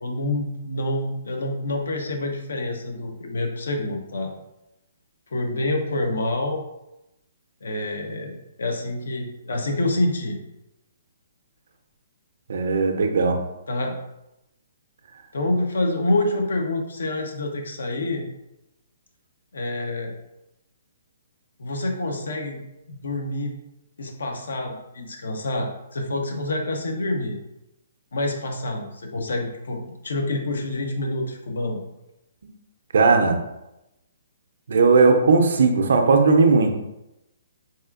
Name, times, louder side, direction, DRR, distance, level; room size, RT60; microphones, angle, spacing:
voice 1, 0.0-4.3 5.3-6.6 7.6-10.4 13.7-14.0 15.3-18.2 19.5-20.1 21.6-22.6 22.9-23.5 24.0-27.4 28.1-31.8, left 2 dB, 75° left, 3 dB, 0.7 m, -27 dB
voice 2, 12.5-13.4 32.4-32.5 32.9-33.4 34.7-36.7, right 4 dB, 70° right, 5 dB, 0.5 m, -17 dB
4.1 x 2.4 x 2.4 m, 0.90 s
hypercardioid pair, 135°, 0 cm